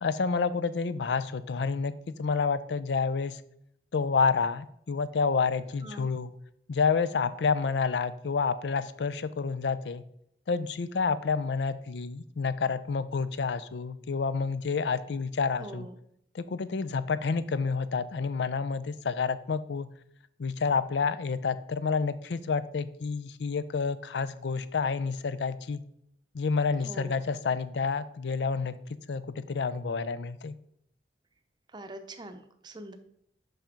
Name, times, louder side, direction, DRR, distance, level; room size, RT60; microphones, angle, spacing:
voice 1, 0.0-1.9 2.2-3.4 3.9-6.3 6.7-10.0 10.5-15.9 16.3-19.9 20.4-25.8 26.3-28.8 29.1-30.5, left 5 dB, 75° left, 14 dB, 0.5 m, -29 dB
voice 2, 5.8-6.1 15.6-16.0 26.8-27.2 31.7-33.0, right 1 dB, 25° right, 8 dB, 0.6 m, -43 dB
5.8 x 5.6 x 5.1 m, 0.72 s
head